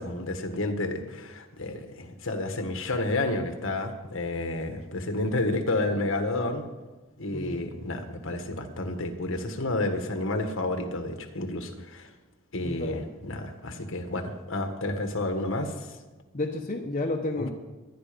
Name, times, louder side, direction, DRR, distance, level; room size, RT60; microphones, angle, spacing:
voice 1, 0.0-6.6 7.2-12.1 12.5-15.7 17.4-17.5, left 2 dB, 60° left, 6 dB, 1.6 m, -30 dB
voice 2, 7.3-7.6 12.6-13.0 16.3-17.5, left 2 dB, 35° left, 1 dB, 1.0 m, -31 dB
19.5 x 11.5 x 5.2 m, 1.2 s
head